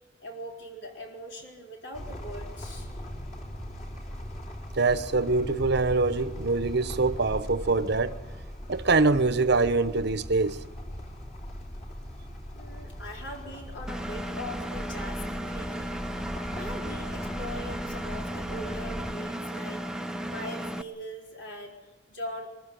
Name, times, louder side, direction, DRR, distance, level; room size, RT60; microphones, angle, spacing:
voice 1, 0.2-2.9 12.5-16.0 16.6-19.9 20.3-21.8 22.1-22.5, equal, 70° left, 4.4 m, -41 dB
sound 1, 1.9-19.2, equal, 40° left, 3.5 m, -39 dB
voice 2, 4.8-8.2 8.7-10.6, right 3 dB, 65° right, 1.0 m, -24 dB
Engine, 13.9-20.8, equal, 5° right, 0.7 m, -35 dB
22.5 x 14.0 x 10.0 m
head